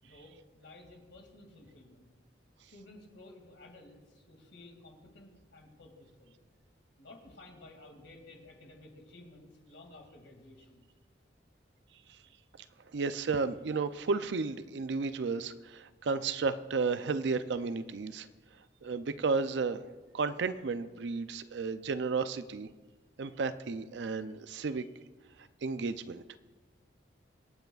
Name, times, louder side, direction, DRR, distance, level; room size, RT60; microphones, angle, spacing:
voice 1, 0.0-2.1 2.6-6.4 7.0-10.9, left 2 dB, 80° left, 2 dB, 2.3 m, -54 dB
voice 2, 12.9-18.3 18.5-19.9 20.1-22.7 23.2-24.8 25.4-26.4, right 4 dB, 70° right, 12 dB, 0.5 m, -33 dB
25.0 x 9.2 x 2.4 m, 1.3 s
head